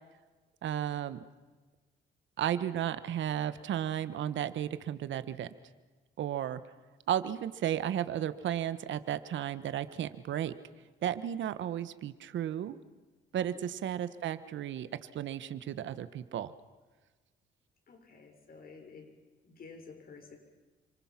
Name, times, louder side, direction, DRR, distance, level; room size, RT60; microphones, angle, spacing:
voice 1, 0.6-1.2 2.4-5.5 6.2-6.6 7.1-10.5 11.0-12.8 13.3-16.5, right 10 dB, 70° right, 13 dB, 1.3 m, -34 dB
voice 2, 17.9-19.1 19.4-20.4, left 4 dB, 50° left, 4 dB, 6.2 m, -51 dB
28.0 x 26.0 x 6.0 m, 1.3 s
cardioid pair, 90°, 20 cm